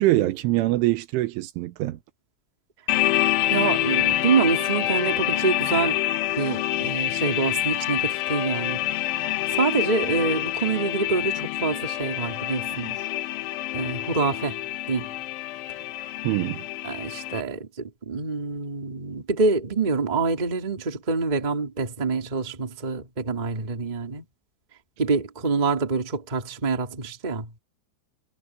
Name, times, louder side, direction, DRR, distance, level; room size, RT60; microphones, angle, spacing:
voice 1, 0.0-2.0 16.2-16.6, right 17 dB, 85° right, 3.4 m, -23 dB
sound 1, 2.9-17.4, left 15 dB, 75° left, 3.4 m, -27 dB
voice 2, 3.5-6.0 6.3-8.8 9.2-13.0 13.7-14.6 14.9-15.1 16.8-24.2 25.0-27.5, right 4 dB, 15° right, 1.3 m, -26 dB
omnidirectional pair, 5.6 m